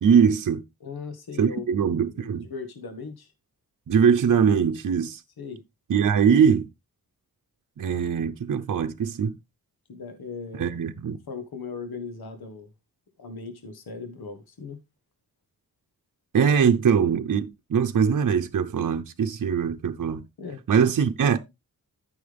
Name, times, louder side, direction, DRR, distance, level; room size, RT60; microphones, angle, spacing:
voice 1, 0.0-0.6 1.4-2.5 3.9-5.2 5.9-6.7 7.8-9.4 10.6-11.2 16.3-20.2 20.7-21.4, right 7 dB, 55° right, 0.8 m, -22 dB
voice 2, 0.8-3.3 5.4-5.6 9.9-10.8 11.3-12.7 13.2-14.8 20.4-20.6, left 4 dB, 90° left, 1.7 m, -38 dB
13.0 x 6.3 x 3.5 m
wide cardioid pair, 155°, 36 cm